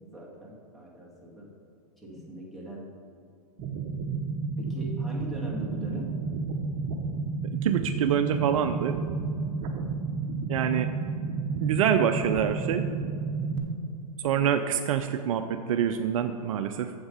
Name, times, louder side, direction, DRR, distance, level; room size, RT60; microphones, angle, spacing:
voice 1, 0.1-1.5 2.0-2.8 4.6-6.1, right 1 dB, ahead, -4 dB, 2.2 m, -40 dB
sound 1, 3.6-13.6, right 4 dB, 40° right, 1.2 m, -31 dB
voice 2, 7.5-9.0 10.5-10.9 11.6-12.9 14.2-16.9, right 9 dB, 60° right, 8 dB, 0.5 m, -26 dB
7.8 x 7.4 x 5.6 m, 2.4 s
hypercardioid pair, 115°, 20 cm